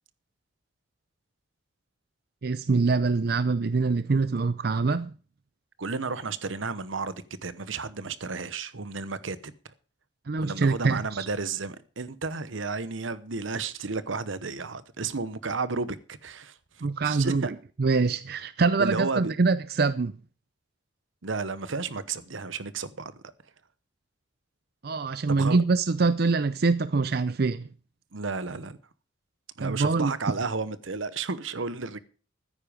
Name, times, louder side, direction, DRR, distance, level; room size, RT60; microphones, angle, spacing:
voice 1, 2.4-5.1 10.3-11.3 16.8-20.1 24.8-27.7 29.6-30.1, right 4 dB, 50° right, 0.5 m, -24 dB
voice 2, 5.8-9.5 10.4-16.6 17.0-17.5 18.8-19.3 21.2-23.2 25.3-25.6 28.1-28.8 29.6-32.0, right 4 dB, 85° right, 1.0 m, -32 dB
14.0 x 9.8 x 5.1 m
head